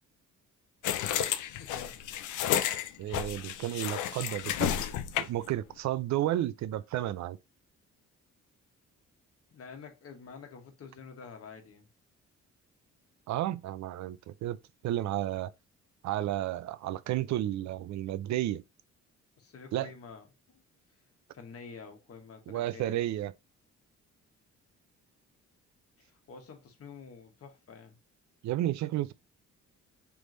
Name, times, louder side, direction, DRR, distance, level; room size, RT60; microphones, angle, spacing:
sound 1, 0.8-5.5, left 10 dB, 75° left, 0.5 m, -31 dB
voice 1, 1.6-2.0 9.5-11.9 19.4-20.6 20.9-21.0 21.3-23.1 26.0-28.0, left 5 dB, 50° left, 1.3 m, -48 dB
voice 2, 3.0-4.8 5.2-7.4 13.3-14.6 14.8-15.5 16.0-18.6 19.7-19.9 22.5-23.3 28.4-29.1, right 13 dB, 65° right, 0.5 m, -32 dB
3.5 x 3.2 x 3.8 m
cardioid pair, 90°, 30 cm